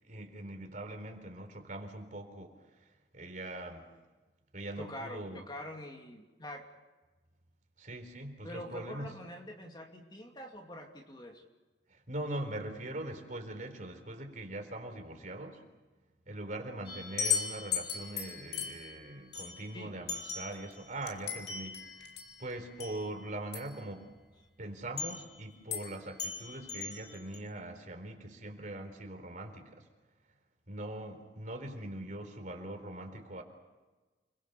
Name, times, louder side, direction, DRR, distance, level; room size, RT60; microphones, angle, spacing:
voice 1, 0.0-3.8 4.5-5.4 7.8-9.1 11.9-15.6 16.3-22.1 22.4-24.1 24.6-29.9 30.7-33.4, right 1 dB, 45° right, 5 dB, 4.0 m, -42 dB
voice 2, 4.8-6.7 8.4-11.4 19.7-19.9, left 1 dB, 25° left, 2 dB, 2.5 m, -45 dB
sound 1, 16.9-23.8 25.0-25.3 25.7-25.9 26.2-27.4, left 7 dB, 60° left, 4.2 m, -38 dB
29.5 x 22.0 x 6.9 m, 1.2 s
head